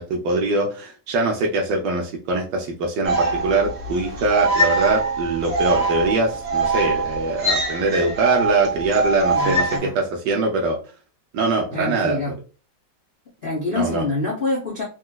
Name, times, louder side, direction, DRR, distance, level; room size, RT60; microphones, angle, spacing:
voice 1, 0.0-10.8 11.3-12.2 13.7-14.0, right 3 dB, 80° right, 0 dB, 1.3 m, -22 dB
sound 1, 3.0-9.8, right 3 dB, 40° right, 1.4 m, -23 dB
voice 2, 9.3-9.9 11.7-12.4 13.4-14.8, left 2 dB, 65° left, -5 dB, 0.5 m, -26 dB
4.0 x 2.3 x 2.2 m, 0.34 s
omnidirectional pair, 2.0 m